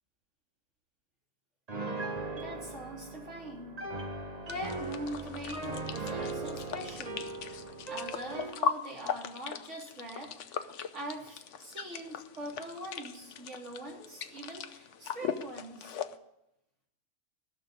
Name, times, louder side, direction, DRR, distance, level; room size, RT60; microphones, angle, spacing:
Piano, 1.7-8.6, right 3 dB, 30° right, 1.2 m, -39 dB
voice 1, 2.3-3.8 4.4-10.3 10.9-16.0, right 1 dB, 50° right, -3 dB, 3.8 m, -43 dB
sound 1, 4.5-16.2, left 7 dB, 60° left, 1.0 m, -39 dB
15.5 x 6.6 x 8.0 m, 0.83 s
omnidirectional pair, 1.5 m